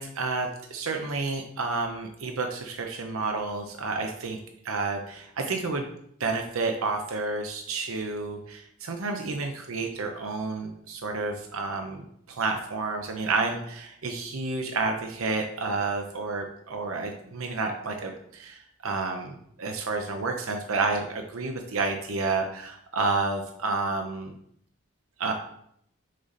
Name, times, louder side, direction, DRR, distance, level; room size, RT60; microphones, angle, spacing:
voice 1, 0.0-4.4 4.6-5.9 6.2-12.0 12.3-24.3 25.2-25.3, right 3 dB, 90° right, 4 dB, 0.7 m, -30 dB
6.4 x 3.9 x 4.1 m, 0.69 s
head